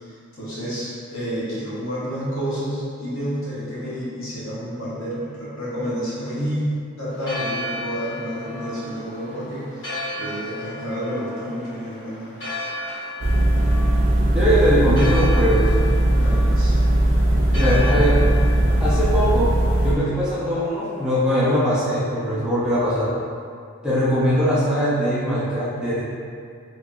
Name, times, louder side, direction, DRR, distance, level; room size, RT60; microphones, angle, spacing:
voice 1, 0.1-9.9 10.2-12.4 16.1-16.8 17.3-18.3, equal, 75° left, -9 dB, 1.2 m, -30 dB
Church bell, 7.1-21.2, left 1 dB, 55° left, 1.2 m, -35 dB
sound 1, 13.2-19.9, right 1 dB, 60° right, 0.6 m, -18 dB
voice 2, 14.3-15.7 17.5-18.3 18.8-19.5 19.8-23.1 23.8-26.0, equal, 5° right, -11 dB, 0.6 m, -21 dB
2.9 x 2.7 x 3.7 m, 2.3 s
head